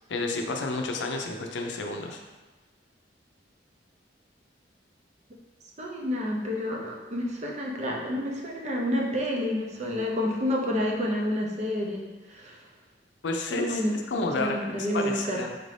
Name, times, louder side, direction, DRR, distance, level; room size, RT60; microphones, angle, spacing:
voice 1, 0.1-2.2 13.2-13.8 14.1-14.6 14.9-15.5, left 3 dB, 85° left, 3 dB, 0.5 m, -30 dB
voice 2, 5.8-12.6 13.5-14.0 14.4-15.4, left 1 dB, 40° right, -1 dB, 0.6 m, -29 dB
4.3 x 2.6 x 3.3 m, 1.2 s
head